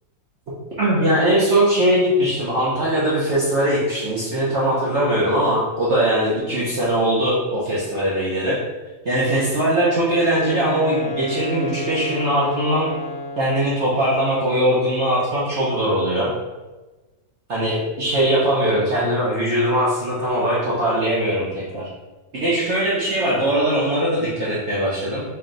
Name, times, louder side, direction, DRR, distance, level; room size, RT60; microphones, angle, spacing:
voice 1, 0.8-8.6 9.0-12.9 13.4-16.3 17.5-21.9 22.3-25.2, right 1 dB, 55° right, -7 dB, 0.8 m, -20 dB
Wind instrument woodwind instrument, 10.1-13.8, left 2 dB, 65° left, 1.0 m, -31 dB
3.3 x 2.8 x 3.8 m, 1.2 s
omnidirectional pair, 1.9 m